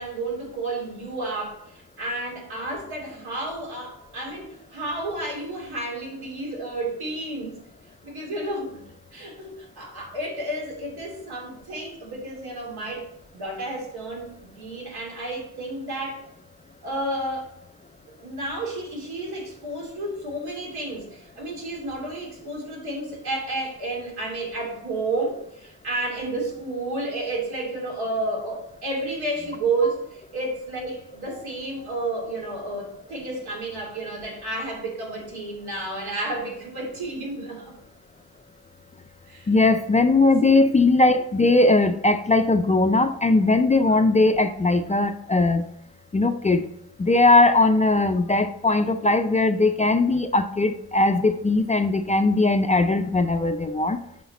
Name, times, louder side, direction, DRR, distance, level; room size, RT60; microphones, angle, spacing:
voice 1, 0.0-7.6 8.0-8.8 9.1-13.0 13.3-16.2 16.8-17.5 18.2-37.7 39.3-39.5 40.2-40.7, right 2 dB, 85° right, -2 dB, 3.0 m, -31 dB
voice 2, 39.5-45.6 46.1-46.6 47.0-54.0, left 2 dB, 20° left, 8 dB, 0.3 m, -19 dB
8.0 x 5.0 x 4.2 m, 0.74 s
wide cardioid pair, 130°, 37 cm